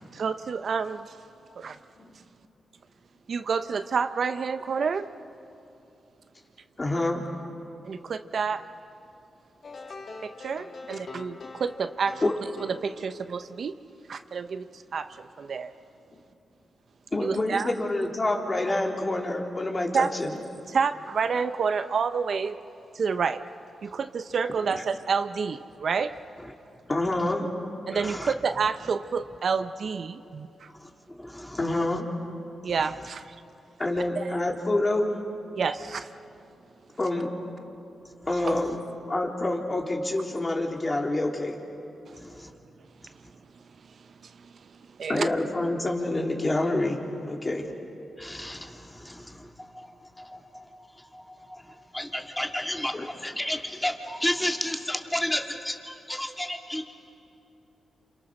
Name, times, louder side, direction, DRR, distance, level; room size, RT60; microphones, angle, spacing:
voice 1, 0.1-1.1 1.6-1.8 3.3-5.1 7.8-8.7 10.2-12.2 12.8-13.7 14.1-15.7 17.2-17.7 19.9-20.2 20.7-22.6 22.9-23.4 23.8-26.1 27.9-30.7 32.6-33.4 34.2-34.3 35.6-36.1 38.5-38.6 44.2-44.5 45.0-45.3, right 5 dB, 65° right, 10 dB, 0.8 m, -29 dB
voice 2, 6.8-7.2 12.2-12.3 16.1-16.2 17.1-20.4 24.7-24.8 26.9-27.5 31.6-32.1 33.8-35.1 37.0-37.3 38.3-41.5 45.1-47.0 47.3-47.6 52.9-53.1, left 2 dB, 30° left, 0 dB, 3.8 m, -27 dB
sound 1, 9.6-13.4, left 3 dB, 55° left, 2.0 m, -43 dB
voice 3, 27.0-27.3 27.9-28.3 30.7-32.0 32.7-32.9 38.4-38.6 42.1-42.5 48.2-56.9, left 1 dB, 10° left, 3 dB, 2.6 m, -34 dB
29.0 x 27.5 x 6.5 m, 2.8 s
cardioid pair, 65°, 0 cm